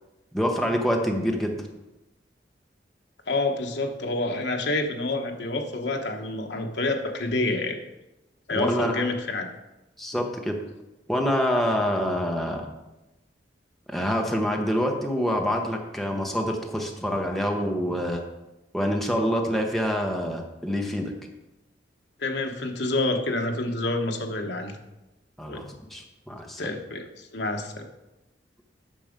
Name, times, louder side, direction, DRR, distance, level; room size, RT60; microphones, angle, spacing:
voice 1, 0.3-1.6 8.5-9.0 10.0-10.6 11.1-12.7 13.9-18.2 18.7-21.1 25.4-25.6 25.9-26.6, equal, ahead, 1 dB, 1.0 m, -26 dB
voice 2, 3.3-7.8 8.5-9.5 22.2-24.8 25.5-25.6 26.6-27.8, left 2 dB, 70° left, 3 dB, 1.2 m, -28 dB
9.1 x 6.0 x 5.2 m, 1.0 s
head